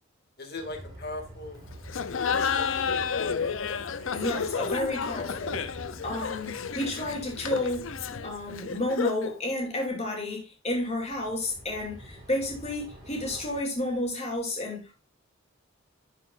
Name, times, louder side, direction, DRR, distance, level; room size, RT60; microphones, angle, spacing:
voice 1, 0.4-1.6 2.4-3.3 4.8-5.4, left 2 dB, 50° left, 2.3 m, -41 dB
Train, 0.5-9.0 10.9-13.6, right 1 dB, 20° right, 3.2 m, -46 dB
Laughter, 1.9-9.3, left 6 dB, 65° left, 0.6 m, -31 dB
voice 2, 4.1-5.6 6.0-7.9 8.2-14.9, left 1 dB, 30° left, 2.7 m, -31 dB
11.5 x 5.6 x 2.5 m
head